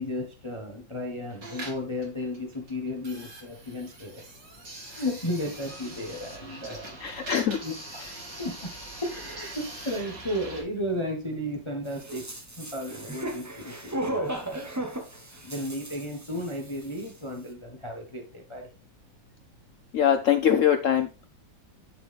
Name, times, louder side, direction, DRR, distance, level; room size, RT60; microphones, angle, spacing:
voice 1, 0.0-4.4 4.8-7.0 7.6-12.3 12.6-14.8 15.4-18.7, left 1 dB, 25° left, 2 dB, 0.8 m, -34 dB
sound 1, 1.3-10.6, right 2 dB, 75° right, 3.2 m, -43 dB
voice 2, 7.0-7.6 19.9-21.1, left 9 dB, 80° left, 9 dB, 0.7 m, -22 dB
sound 2, 11.9-16.7 17.0-17.1, right 1 dB, 15° right, 0.6 m, -35 dB
10.0 x 3.8 x 3.3 m, 0.33 s
omnidirectional pair, 2.0 m